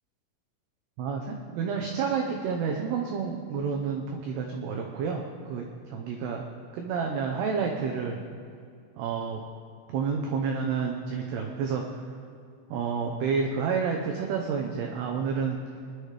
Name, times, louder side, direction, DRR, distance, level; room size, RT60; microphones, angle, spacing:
voice 1, 1.0-6.5 6.7-8.2 9.0-9.4 9.9-12.1 12.7-15.6, right 6 dB, 90° right, 1 dB, 2.3 m, -30 dB
21.5 x 11.0 x 3.3 m, 2.3 s
omnidirectional pair, 5.9 m